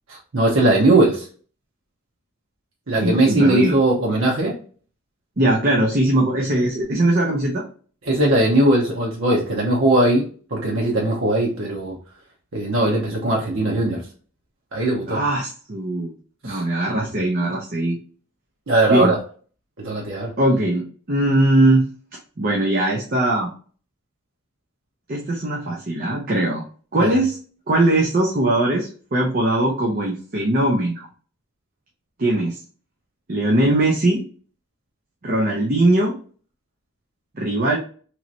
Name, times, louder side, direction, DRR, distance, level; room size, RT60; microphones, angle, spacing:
voice 1, 0.1-1.2 2.9-4.5 8.1-10.2 10.5-12.0 12.5-14.0 14.7-15.2 16.4-16.6 17.0-17.1 18.7-19.2 19.8-20.3 27.0-27.1, right 1 dB, 75° right, -3 dB, 0.9 m, -19 dB
voice 2, 3.0-3.7 5.4-7.6 15.1-16.1 16.4-18.0 18.9-19.1 20.4-21.8 22.4-23.5 25.1-26.6 26.9-27.4 27.7-31.1 32.2-32.6 33.3-34.2 35.2-36.2 37.3-37.8, right 1 dB, 45° right, -1 dB, 0.6 m, -20 dB
3.1 x 3.0 x 2.6 m, 0.41 s
head